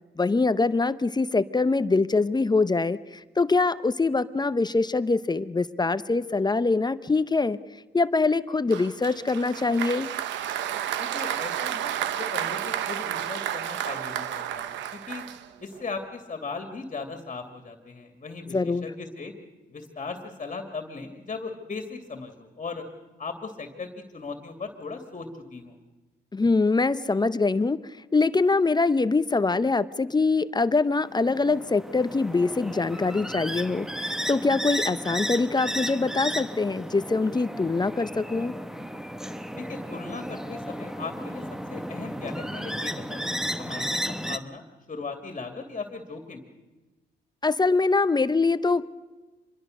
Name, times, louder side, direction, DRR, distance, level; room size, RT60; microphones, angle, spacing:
voice 1, 0.2-7.6 7.9-10.1 18.5-18.9 26.3-27.8 28.1-38.5 47.4-48.9, left 3 dB, 25° left, 14 dB, 0.8 m, -24 dB
Applause, 8.7-15.8, right 10 dB, 85° right, 1.0 m, -31 dB
voice 2, 11.0-11.9 12.2-15.2 15.6-19.3 19.7-22.8 23.2-25.8 39.6-41.4 41.7-46.4, left 4 dB, 40° left, 6 dB, 2.6 m, -38 dB
sound 1, 31.1-44.4, equal, 5° right, 1.2 m, -34 dB
25.5 x 21.5 x 6.6 m, 1.2 s
supercardioid pair, 70°, 18 cm